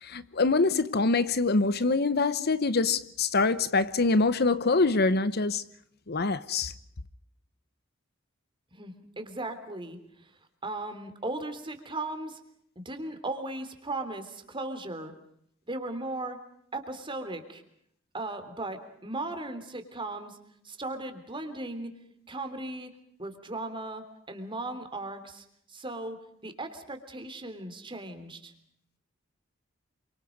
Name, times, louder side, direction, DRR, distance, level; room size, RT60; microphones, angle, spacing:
voice 1, 0.0-5.6 6.1-6.7, left 3 dB, 55° left, 0.9 m, -25 dB
voice 2, 8.7-10.0 10.2-10.3 10.6-12.4 12.9-15.1 15.7-16.4 16.7-17.6 18.1-20.4 20.6-21.9 22.3-22.9 23.2-28.5, right 2 dB, 25° right, 3.4 m, -37 dB
28.0 x 25.0 x 5.3 m
head